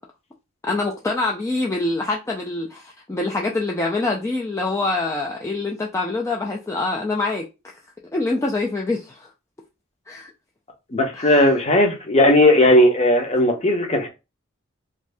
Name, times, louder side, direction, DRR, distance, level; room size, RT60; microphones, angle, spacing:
voice 1, 0.6-7.5 8.1-9.3 10.1-10.3 11.1-11.5, left 2 dB, 15° left, 0.3 m, -25 dB
voice 2, 10.9-14.1, left 1 dB, 30° left, 0.7 m, -16 dB
2.6 x 2.6 x 3.3 m
head